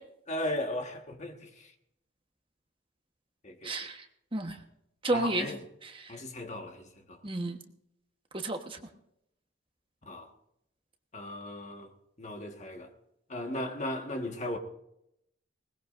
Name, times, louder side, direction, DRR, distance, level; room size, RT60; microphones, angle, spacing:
voice 1, 0.3-1.5 3.4-3.7 5.1-5.6 6.1-7.2 10.1-10.3 11.1-11.9 12.2-12.9 13.3-14.6, left 1 dB, 35° left, 1.5 m, -36 dB
voice 2, 3.6-4.0 4.3-4.6 5.0-5.5 5.8-6.1 7.2-7.6 8.4-8.8, right 2 dB, 25° right, 1.2 m, -31 dB
20.5 x 19.5 x 2.6 m
head